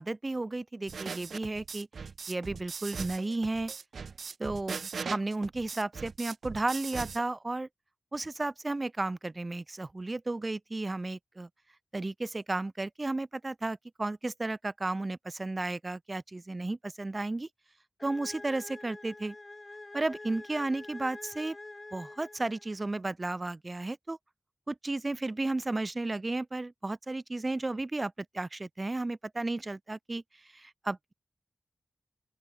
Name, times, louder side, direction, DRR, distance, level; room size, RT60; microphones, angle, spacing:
voice 1, 0.0-1.9 2.3-3.7 4.4-7.7 8.1-11.5 11.9-17.5 18.0-19.4 19.9-21.6 21.9-24.2 24.7-30.2 30.5-31.1, right 2 dB, 25° right, 0.3 m, -33 dB
sound 1, 0.9-7.2, right 5 dB, 75° right, 0.7 m, -40 dB
sound 2, 18.0-22.9, left 2 dB, 30° left, 1.3 m, -47 dB
open air
wide cardioid pair, 105°, 0 cm